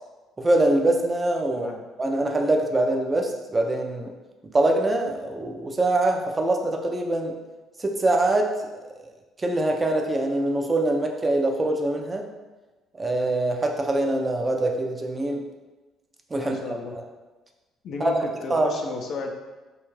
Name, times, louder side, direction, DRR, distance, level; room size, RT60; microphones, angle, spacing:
voice 1, 0.4-1.7 2.0-4.1 4.5-7.3 7.8-8.5 9.4-12.3 13.0-15.4 16.3-16.6 18.0-18.1 18.5-18.7, right 2 dB, 25° right, 3 dB, 0.4 m, -23 dB
voice 2, 16.4-17.0 17.8-19.3, left 4 dB, 60° left, 2 dB, 0.4 m, -33 dB
2.5 x 2.3 x 3.1 m, 1.2 s
supercardioid pair, 65°, 0 cm